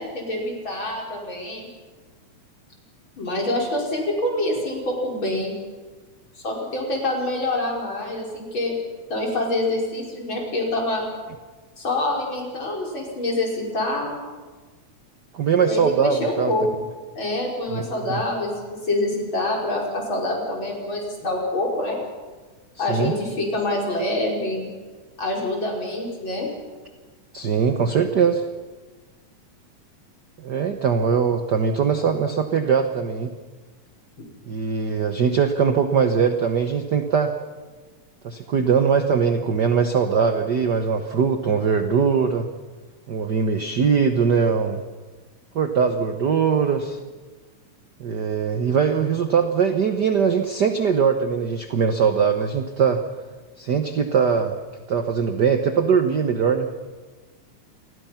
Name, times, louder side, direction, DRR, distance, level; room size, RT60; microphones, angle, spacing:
voice 1, 0.0-1.7 3.2-5.6 6.4-8.7 9.1-11.1 11.8-14.2 15.6-16.7 17.2-22.0 22.8-24.7 25.2-26.5, left 1 dB, 40° left, -1 dB, 5.5 m, -26 dB
voice 2, 15.3-16.5 17.7-18.2 22.8-23.1 27.3-28.4 30.4-33.3 34.4-37.3 38.2-42.5 43.1-44.8 45.5-47.0 48.0-53.0 53.6-54.6 54.9-56.7, right 6 dB, 60° right, 7 dB, 1.1 m, -21 dB
28.5 x 21.5 x 5.8 m, 1.3 s
omnidirectional pair, 3.4 m